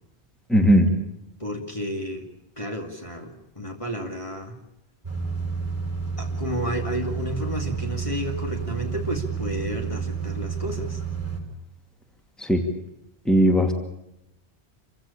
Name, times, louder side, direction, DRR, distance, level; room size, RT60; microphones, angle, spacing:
voice 1, 0.5-0.9 12.4-12.7 13.2-13.7, equal, ahead, 4 dB, 2.5 m, -18 dB
voice 2, 1.4-2.3 2.6-4.6 6.2-11.0, equal, 30° left, 2 dB, 2.6 m, -31 dB
sound 1, 5.0-11.4, right 6 dB, 30° right, 4.5 m, -30 dB
27.5 x 16.0 x 8.6 m, 0.85 s
omnidirectional pair, 1.1 m